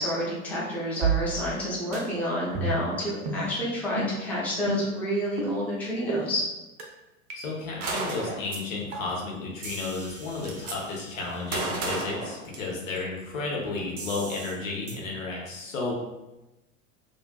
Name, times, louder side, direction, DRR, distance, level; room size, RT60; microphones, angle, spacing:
voice 1, 0.0-6.5, equal, 5° left, -7 dB, 0.5 m, -29 dB
sound 1, 1.0-1.6 1.9-2.0 2.5-2.9 3.3-3.5 4.0-4.1 4.7-5.0 5.4-5.5 6.1-6.2 6.8-6.9 7.3-7.4 7.8-8.0 8.5-8.6 8.9-9.2 9.6-11.5 14.0-14.5 14.9-15.0, right 4 dB, 45° right, 0.7 m, -32 dB
voice 2, 7.3-15.9, left 3 dB, 65° left, -2 dB, 0.8 m, -32 dB
Gunshot gunfire, 7.9-8.5 9.7-9.8 10.0-10.8 11.5-13.0, right 3 dB, 85° right, 0.6 m, -32 dB
2.4 x 2.3 x 2.2 m, 1.0 s
figure-of-eight pair, 85°, 42 cm